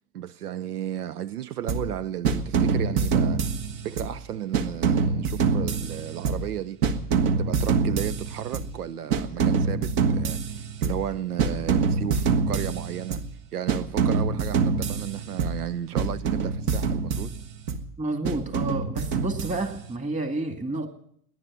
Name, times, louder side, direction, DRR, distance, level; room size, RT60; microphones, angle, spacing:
voice 1, 0.1-3.4 3.8-6.9 7.4-13.3 13.5-17.3, right 10 dB, 85° right, 0.7 m, -34 dB
sound 1, 1.7-2.0 2.2-4.2 4.5-6.6 6.8-8.8 9.1-11.1 11.4-13.3 13.7-15.7 16.0-17.9 18.2-19.9, right 5 dB, 45° right, 1.5 m, -25 dB
voice 2, 18.0-20.9, right 2 dB, 15° right, 2.2 m, -30 dB
18.5 x 10.5 x 7.3 m
hypercardioid pair, 100°, 45 cm